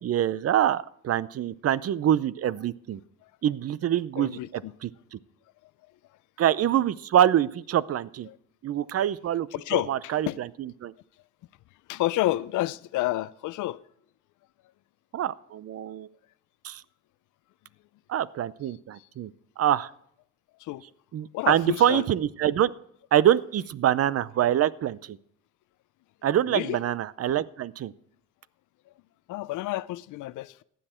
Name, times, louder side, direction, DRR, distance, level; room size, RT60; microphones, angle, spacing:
voice 1, 0.0-3.0 3.4-5.2 6.4-8.3 8.6-10.9 15.1-16.1 16.6-16.8 18.1-19.3 19.6-19.9 21.1-22.7 23.1-25.2 26.2-27.9, right 11 dB, 50° right, 0.6 m, -25 dB
voice 2, 4.2-4.7 8.3-8.4 9.5-10.4 11.9-13.8 20.6-20.8 21.3-22.0 26.5-26.8 29.3-30.6, left 16 dB, 85° left, 0.5 m, -29 dB
15.0 x 10.0 x 4.4 m
cardioid pair, 90°, 30 cm